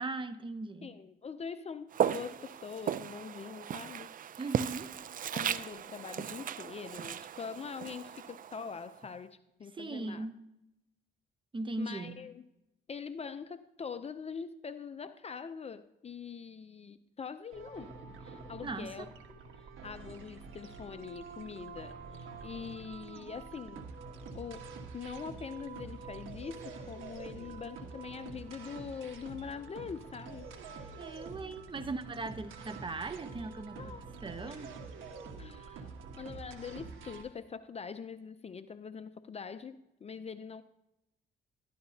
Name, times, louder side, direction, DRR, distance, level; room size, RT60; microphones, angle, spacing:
voice 1, 0.0-0.9 4.4-5.0 9.7-10.4 11.5-12.2 18.6-19.1 31.0-33.9 34.2-34.7, right 3 dB, 25° right, 10 dB, 0.8 m, -39 dB
voice 2, 0.8-4.1 5.3-10.3 11.8-12.4 12.9-17.9 18.2-19.1 19.8-23.9 24.3-31.0 31.7-31.9 33.7-34.0 34.5-34.6 35.4-40.6, left 6 dB, 30° left, 12 dB, 0.5 m, -43 dB
Walk footsteps, 1.9-9.0, right 9 dB, 45° right, 0.4 m, -36 dB
sound 1, 17.5-37.2, right 4 dB, 85° right, 1.4 m, -47 dB
12.5 x 11.5 x 2.8 m, 0.90 s
cardioid pair, 90°, 20 cm